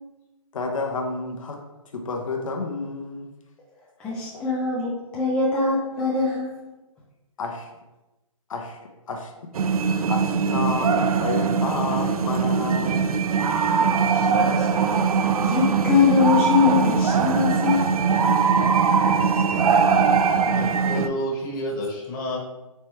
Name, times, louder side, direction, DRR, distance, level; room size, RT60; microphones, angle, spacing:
voice 1, 0.5-1.6 1.9-3.3 7.4-7.7 8.5-8.8 9.1-9.5 10.1-13.2, left 3 dB, 65° left, 2 dB, 0.8 m, -30 dB
voice 2, 4.0-6.6 14.1-14.7 15.0-17.9, left 5 dB, 5° left, -7 dB, 0.3 m, -23 dB
sound 1, 9.5-21.1, right 5 dB, 80° right, 0.4 m, -21 dB
voice 3, 20.5-22.4, equal, 35° left, -1 dB, 1.2 m, -29 dB
4.4 x 3.2 x 3.1 m, 1.0 s
hypercardioid pair, 150°, 18 cm